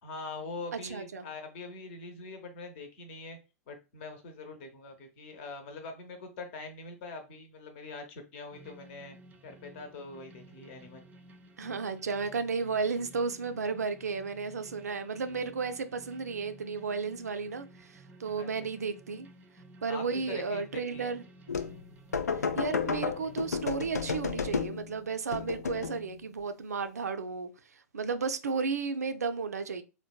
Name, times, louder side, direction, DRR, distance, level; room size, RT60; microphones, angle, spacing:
voice 1, 0.0-3.4 3.7-9.2 9.4-11.0 18.3-18.5 19.9-21.1, left 3 dB, 45° left, 0.8 m, -43 dB
voice 2, 0.7-1.3 11.6-19.3 19.8-21.2 22.6-27.5 27.9-29.8, right 5 dB, 70° right, 0.4 m, -33 dB
sound 1, 8.5-23.5, right 2 dB, 20° right, 0.5 m, -54 dB
sound 2, 21.5-21.8 22.1-24.9 25.3-26.0, left 5 dB, 75° left, 0.3 m, -32 dB
3.9 x 2.1 x 2.2 m
figure-of-eight pair, 100°, 9 cm